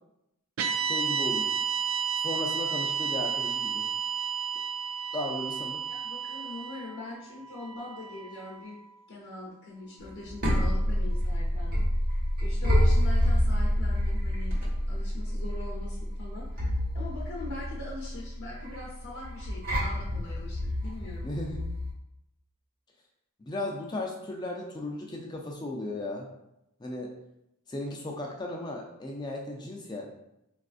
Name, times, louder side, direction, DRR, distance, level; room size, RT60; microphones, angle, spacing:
sound 1, 0.6-8.9, right 7 dB, 75° right, 0.3 m, -32 dB
voice 1, 0.8-1.5 2.2-3.9 5.1-5.8 21.2-21.6 23.4-26.3 26.8-27.1 27.7-30.1, left 1 dB, 20° left, 0 dB, 0.3 m, -35 dB
voice 2, 5.9-8.8 9.1-11.9 12.4-21.3, left 2 dB, 65° left, -5 dB, 0.6 m, -42 dB
sound 2, 10.0-21.9, equal, 40° right, 1.0 m, -28 dB
4.1 x 2.4 x 2.4 m, 0.84 s
head